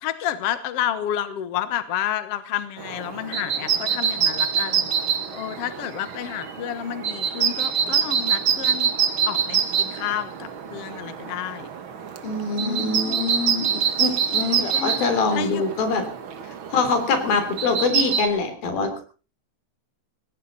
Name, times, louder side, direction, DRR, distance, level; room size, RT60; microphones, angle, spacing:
voice 1, 0.0-4.9 5.3-8.9 9.2-11.7 12.5-13.2 14.7-15.6, left 10 dB, 60° left, 12 dB, 1.7 m, -30 dB
sound 1, 2.8-18.3, right 7 dB, 55° right, 1.5 m, -26 dB
voice 2, 12.2-16.1 16.7-19.0, left 4 dB, 80° left, 7 dB, 5.1 m, -24 dB
18.5 x 16.0 x 4.1 m, 0.35 s
omnidirectional pair, 4.2 m